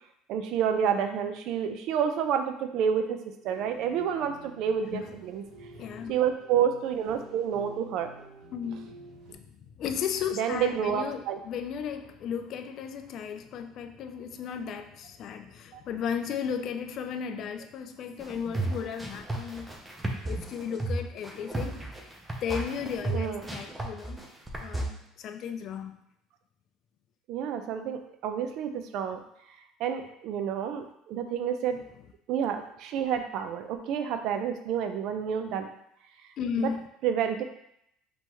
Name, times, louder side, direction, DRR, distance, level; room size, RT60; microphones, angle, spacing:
voice 1, 0.3-3.2 3.4-5.4 6.1-8.1 10.4-11.4 15.7-15.8 23.1-23.4 27.3-29.2 29.8-31.8 32.3-35.7 36.6-36.7 37.0-37.4, right 8 dB, 60° right, 7 dB, 0.5 m, -29 dB
sound 1, 3.4-9.3, right 3 dB, 85° right, 1.4 m, -50 dB
voice 2, 5.6-6.1 8.5-19.8 20.2-21.8 22.4-24.3 24.6-25.9 36.4-36.9, left 7 dB, 45° left, 8 dB, 0.4 m, -35 dB
sound 2, 18.2-24.8, right 1 dB, 10° right, 0.6 m, -33 dB
5.5 x 3.0 x 3.0 m, 0.75 s
cardioid pair, 145°, 0 cm